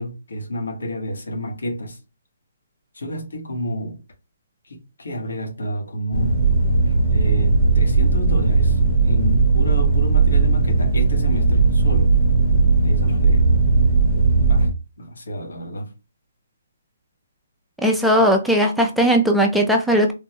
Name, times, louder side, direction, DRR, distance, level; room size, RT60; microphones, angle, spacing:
voice 1, 0.0-2.0 2.9-4.0 4.7-6.4 6.9-8.8 9.0-12.1 12.8-13.5 14.4-14.7 15.0-15.9, equal, 85° left, 1.2 m, -30 dB
sound 1, 6.1-14.7, right 4 dB, 20° left, 0.9 m, -17 dB
voice 2, 17.8-20.1, equal, ahead, 0.3 m, -17 dB
3.5 x 2.1 x 2.9 m
hypercardioid pair, 175°, 0 cm